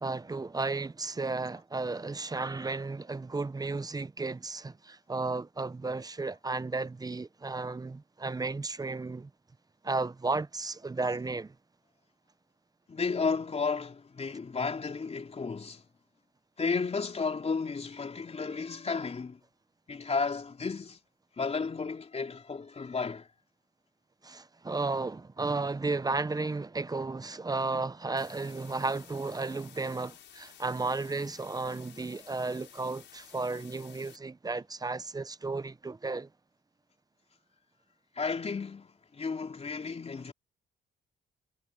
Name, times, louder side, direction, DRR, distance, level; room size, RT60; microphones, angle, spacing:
voice 1, 0.0-9.3 9.8-11.5 24.2-36.3, right 3 dB, 20° right, 0.8 m, -33 dB
voice 2, 12.9-15.8 16.6-19.4 19.9-21.0 21.4-23.3 38.2-40.3, left 4 dB, 30° left, 3.7 m, -33 dB
sound 1, 28.2-34.2, left 10 dB, 65° left, 6.1 m, -54 dB
cardioid pair, 90°, 20 cm